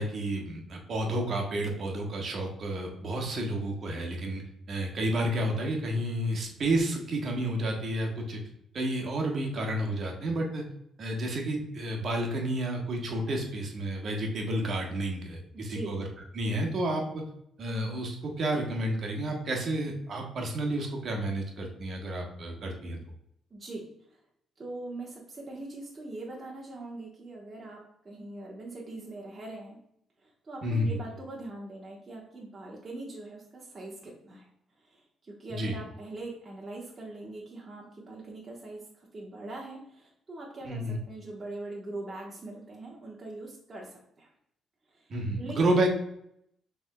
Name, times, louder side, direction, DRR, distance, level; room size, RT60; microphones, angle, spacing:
voice 1, 0.0-4.4 4.7-8.4 8.7-10.6 11.0-16.1 16.3-17.0 17.6-23.0 30.6-31.0 35.5-35.7 40.6-41.0 45.1-45.9, right 1 dB, 55° right, 1 dB, 1.3 m, -30 dB
voice 2, 15.5-16.0 23.5-24.2 24.6-29.8 30.2-34.5 34.8-44.3 44.9-45.1 45.4-45.7, right 2 dB, 35° right, -4 dB, 1.1 m, -42 dB
6.3 x 3.5 x 2.2 m, 0.74 s
cardioid pair, 90°, 0 cm